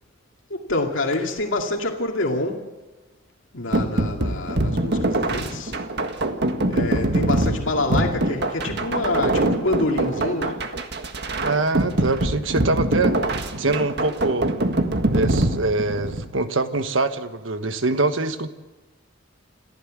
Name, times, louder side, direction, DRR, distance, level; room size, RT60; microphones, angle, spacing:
voice 1, 0.5-2.6 3.5-5.7 6.7-10.6, left 2 dB, 90° left, 1 dB, 2.3 m, -26 dB
sound 1, 3.7-16.3, right 1 dB, 60° right, 1.7 m, -23 dB
voice 2, 11.4-13.2 13.6-14.5 15.1-18.5, right 3 dB, 85° right, 9 dB, 1.4 m, -24 dB
27.0 x 14.5 x 7.6 m, 1.2 s
head